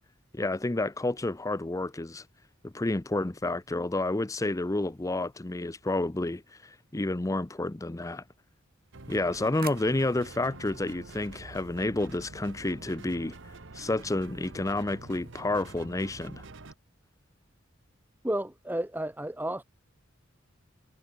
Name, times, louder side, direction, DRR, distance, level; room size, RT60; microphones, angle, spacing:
voice 1, 0.3-2.2 2.6-8.2 9.1-13.4 13.7-16.4, left 2 dB, 15° left, 0.6 m, -30 dB
sound 1, 4.8-6.6 8.8-12.1, right 9 dB, 50° right, 5.3 m, -51 dB
sound 2, 8.9-16.7, right 3 dB, 65° right, 1.4 m, -47 dB
voice 2, 18.2-19.6, right 1 dB, 10° right, 2.9 m, -32 dB
head